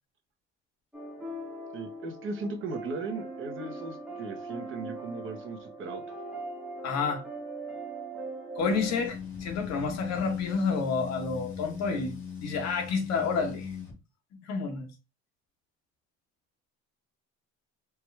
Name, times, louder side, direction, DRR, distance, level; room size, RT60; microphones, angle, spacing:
sound 1, 0.9-9.1, right 2 dB, ahead, 1.2 m, -40 dB
voice 1, 1.7-6.0, right 3 dB, 45° right, 0.9 m, -37 dB
voice 2, 6.8-7.3 8.6-13.7 14.4-14.9, left 5 dB, 60° left, 1.1 m, -30 dB
sound 2, 8.6-13.9, left 7 dB, 45° left, 1.4 m, -39 dB
4.6 x 2.5 x 3.2 m
cardioid pair, 165°, 29 cm